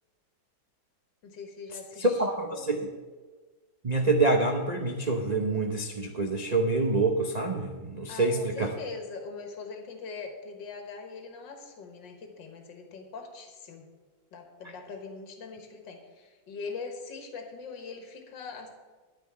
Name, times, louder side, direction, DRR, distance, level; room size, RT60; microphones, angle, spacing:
voice 1, 1.2-2.2 2.5-2.7 8.1-13.9 14.3-18.7, left 4 dB, 70° left, 4 dB, 2.1 m, -42 dB
voice 2, 2.0-2.9 3.8-8.7, right 3 dB, 65° right, 3 dB, 0.4 m, -26 dB
10.5 x 5.9 x 8.7 m, 1.3 s
omnidirectional pair, 2.1 m